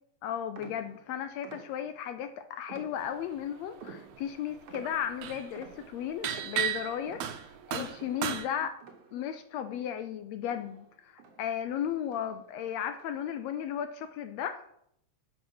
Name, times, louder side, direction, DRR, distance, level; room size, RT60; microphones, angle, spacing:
voice 1, 0.2-8.8 9.1-14.7, left 9 dB, 80° left, 9 dB, 1.6 m, -35 dB
sound 1, 0.6-2.1 2.7-3.4 3.8-9.4 9.7-11.7 12.1-12.4 12.9-13.4, right 5 dB, 60° right, 1.9 m, -52 dB
sound 2, 3.4-3.8 4.1-8.5, right 9 dB, 80° right, 2.0 m, -34 dB
8.0 x 4.9 x 6.2 m, 0.71 s
omnidirectional pair, 3.4 m